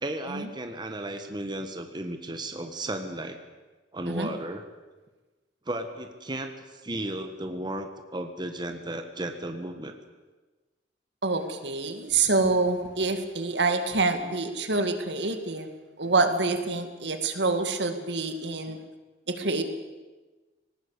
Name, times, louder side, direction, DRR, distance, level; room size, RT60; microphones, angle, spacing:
voice 1, 0.0-3.4 3.9-4.7 5.7-6.5 6.8-9.9, right 1 dB, 25° right, 6 dB, 1.5 m, -34 dB
voice 2, 11.2-15.7 16.0-18.8 19.3-19.6, right 3 dB, 75° right, 7 dB, 2.3 m, -26 dB
20.0 x 18.5 x 8.4 m, 1.2 s
head